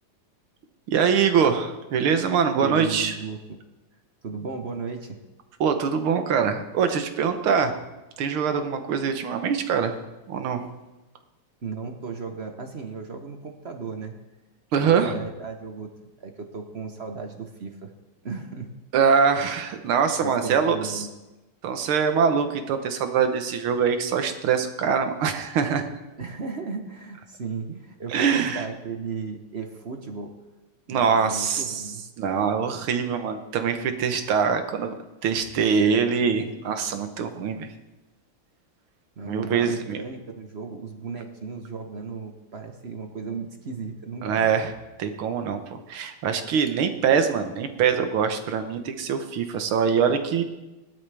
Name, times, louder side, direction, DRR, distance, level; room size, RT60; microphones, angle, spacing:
voice 1, 0.9-3.1 5.6-7.8 8.2-10.0 10.3-10.7 14.7-15.2 18.9-21.1 21.6-25.9 28.1-28.7 30.9-31.8 32.2-34.9 35.2-37.7 39.3-40.0 44.2-44.7 45.0-50.4, right 6 dB, 80° right, 7 dB, 2.0 m, -23 dB
voice 2, 2.6-3.6 4.2-5.2 11.6-14.2 14.8-15.9 16.2-17.9 18.2-18.7 20.2-21.1 26.2-30.3 30.9-32.0 39.2-44.6, right 4 dB, 45° right, 4 dB, 0.9 m, -35 dB
18.0 x 12.0 x 3.5 m, 1.0 s
omnidirectional pair, 2.3 m